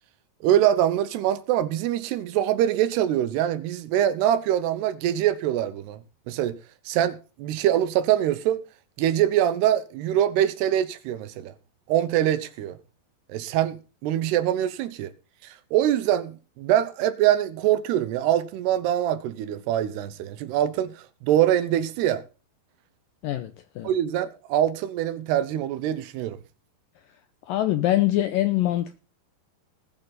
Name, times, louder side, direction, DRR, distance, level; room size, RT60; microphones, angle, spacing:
voice 1, 0.4-6.0 6.3-6.6 6.9-8.6 9.0-11.5 11.9-12.7 13.3-15.1 15.4-22.2 23.8-26.4, right 11 dB, 75° right, 2.9 m, -24 dB
voice 2, 23.2-23.9 27.5-29.0, left 14 dB, 85° left, 2.0 m, -24 dB
20.0 x 9.1 x 4.1 m
omnidirectional pair, 5.0 m